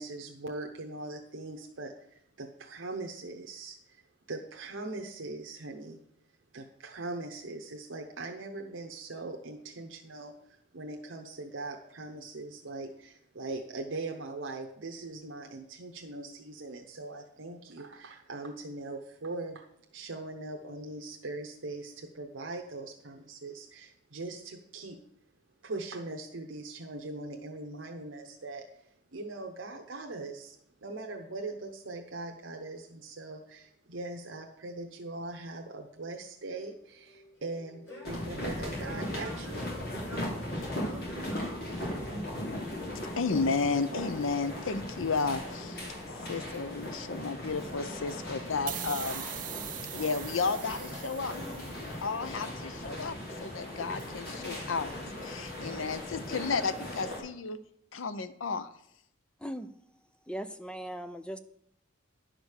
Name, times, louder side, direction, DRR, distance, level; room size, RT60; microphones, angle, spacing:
voice 1, 0.0-4.0 4.3-6.0 6.5-19.7 19.9-25.0 25.6-39.8, right 2 dB, 75° right, 3 dB, 0.9 m, -41 dB
Singing / Plucked string instrument, 36.6-42.4, equal, 70° left, 4.3 m, -49 dB
sound 1, 38.0-57.2, left 1 dB, 50° left, 3.1 m, -38 dB
voice 2, 43.2-45.8 46.3-49.2 49.9-51.4 51.8-54.9 55.2-57.6 57.9-58.7, left 4 dB, 85° left, 13 dB, 0.7 m, -32 dB
sound 2, 48.7-52.1, right 12 dB, 40° right, 0.6 m, -41 dB
voice 3, 60.3-61.4, equal, 5° left, 10 dB, 0.4 m, -38 dB
11.0 x 5.1 x 6.4 m, 0.73 s
head